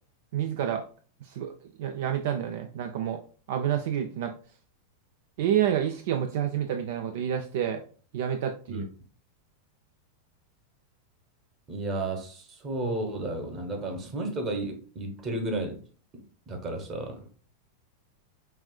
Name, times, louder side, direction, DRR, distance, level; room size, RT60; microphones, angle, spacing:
voice 1, 0.3-0.8 1.2-3.2 3.5-4.3 5.4-7.8 8.1-8.9, right 9 dB, 65° right, 7 dB, 0.3 m, -29 dB
voice 2, 11.7-15.8 16.1-17.2, right 2 dB, 30° right, 4 dB, 1.0 m, -33 dB
5.6 x 2.4 x 2.3 m, 0.41 s
hypercardioid pair, 105°, 0 cm